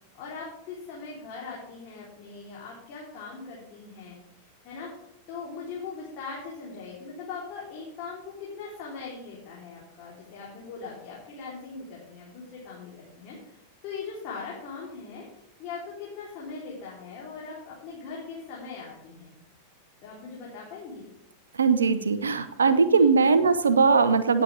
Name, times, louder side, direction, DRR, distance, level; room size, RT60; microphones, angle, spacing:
voice 1, 0.1-15.2 15.6-19.3 20.0-21.0 22.9-23.1, left 4 dB, 40° left, -5 dB, 3.5 m, -40 dB
voice 2, 21.6-24.4, right 5 dB, 70° right, 12 dB, 0.9 m, -20 dB
18.0 x 7.5 x 3.5 m, 0.78 s
figure-of-eight pair, 90°, 0 cm